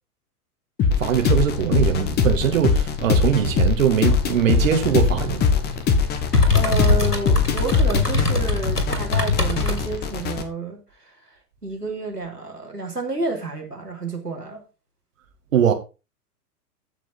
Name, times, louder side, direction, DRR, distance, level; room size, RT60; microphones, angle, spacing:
sound 1, 0.8-10.4, left 5 dB, 20° left, 1.5 m, -22 dB
voice 1, 1.0-5.5 15.5-15.7, right 9 dB, 55° right, 2.4 m, -21 dB
sound 2, 3.4-9.8, left 3 dB, 85° left, 2.6 m, -24 dB
voice 2, 6.5-11.1 11.6-14.6, right 3 dB, 90° right, 3.3 m, -30 dB
14.5 x 6.0 x 4.1 m
figure-of-eight pair, 105°, 46 cm